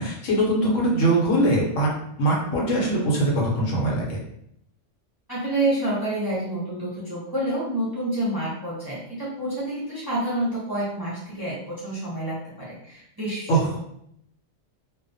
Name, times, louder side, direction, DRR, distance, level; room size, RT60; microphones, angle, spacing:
voice 1, 0.0-1.9 2.2-4.2 13.5-13.8, right 1 dB, 80° left, -2 dB, 1.1 m, -22 dB
voice 2, 5.3-13.8, right 1 dB, 25° right, -8 dB, 0.5 m, -28 dB
2.3 x 2.1 x 2.5 m, 0.75 s
omnidirectional pair, 1.3 m